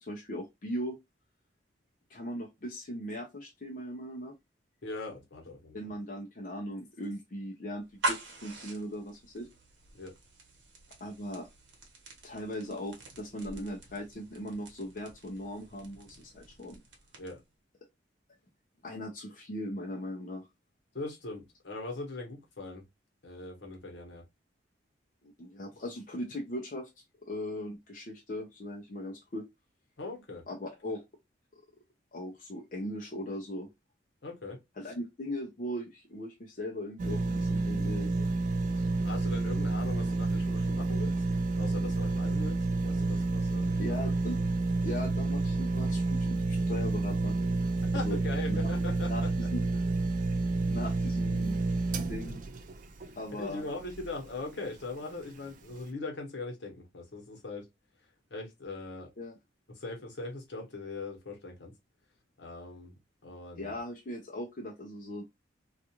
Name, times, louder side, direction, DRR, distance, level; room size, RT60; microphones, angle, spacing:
voice 1, 0.0-1.0 2.1-4.3 5.7-9.5 11.0-11.5 12.2-16.8 18.8-20.5 25.4-26.9 27.2-29.4 30.5-31.0 32.1-33.7 34.8-38.3 43.8-44.4 44.8-47.4 48.0-48.2 48.5-48.7 49.1-49.6 50.2-50.3 50.7-51.6 52.1-52.4 53.2-53.6 59.2-59.4 63.5-65.2, equal, 45° left, 0.5 m, -39 dB
voice 2, 4.8-5.8 9.9-10.1 17.2-17.4 20.9-22.8 23.2-24.2 30.0-30.4 34.2-34.6 34.8-34.9 38.7-41.2 41.5-44.1 44.4-44.5 47.8-49.3 53.3-57.6 58.3-59.1 59.7-61.7 62.4-62.9 63.2-63.7, left 3 dB, 75° left, 1.0 m, -40 dB
sound 1, 7.8-17.5, right 2 dB, 85° right, 1.0 m, -42 dB
sound 2, 37.0-54.2 54.7-54.8, right 2 dB, 45° right, 0.3 m, -30 dB
2.4 x 2.3 x 2.8 m
head